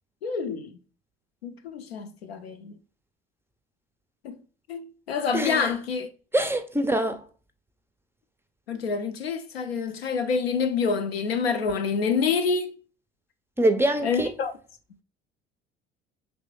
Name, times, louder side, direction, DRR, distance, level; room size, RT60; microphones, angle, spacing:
voice 1, 0.2-0.7 1.4-2.7 4.2-4.4 4.7-6.1 8.7-12.8 14.0-14.5, left 5 dB, 85° left, 0.5 m, -27 dB
voice 2, 5.3-5.7 6.3-7.2 13.6-14.3, right 1 dB, 10° right, 0.4 m, -24 dB
5.2 x 3.0 x 3.0 m
figure-of-eight pair, 55°, 30 cm